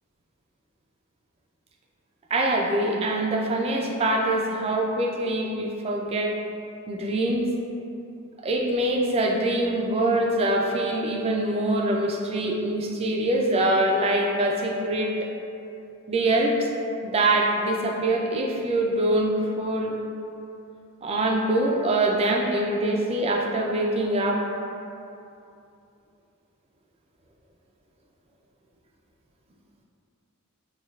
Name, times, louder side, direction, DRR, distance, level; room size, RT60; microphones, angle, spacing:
voice 1, 2.3-6.4 6.9-7.5 8.4-15.3 16.1-16.7 17.0-20.0 21.0-24.4, right 1 dB, 25° right, 0 dB, 0.3 m, -24 dB
6.2 x 2.3 x 2.3 m, 2.7 s
head